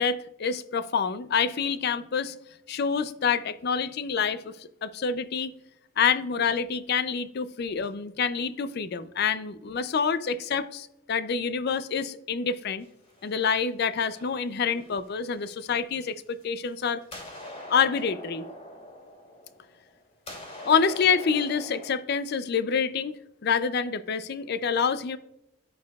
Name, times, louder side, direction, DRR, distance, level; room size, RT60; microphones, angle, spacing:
voice 1, 0.0-2.4 2.7-5.5 6.0-12.9 13.2-17.0 17.7-18.5 20.6-25.2, left 6 dB, 45° left, 14 dB, 0.4 m, -27 dB
sound 1, 12.8-13.7 14.1-15.6 16.3-16.7 17.0-20.0 20.3-21.9, left 1 dB, 25° left, 2.7 m, -43 dB
14.0 x 4.8 x 2.3 m, 0.85 s
head